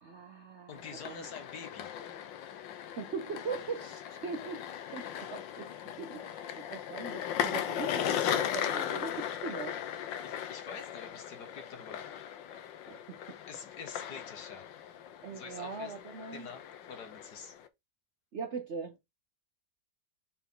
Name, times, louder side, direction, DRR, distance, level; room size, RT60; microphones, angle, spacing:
voice 1, 0.0-1.3 3.0-5.7 6.0-9.7 12.9-13.4 15.2-16.5 18.3-19.0, right 4 dB, 55° right, 0.8 m, -41 dB
sound 1, 0.7-17.7, left 10 dB, 85° left, 1.5 m, -38 dB
voice 2, 0.7-1.9 9.3-9.5 10.2-12.0 13.5-14.7 15.3-16.0 16.3-17.6, left 5 dB, 65° left, 1.9 m, -47 dB
5.7 x 4.5 x 3.8 m
omnidirectional pair, 2.0 m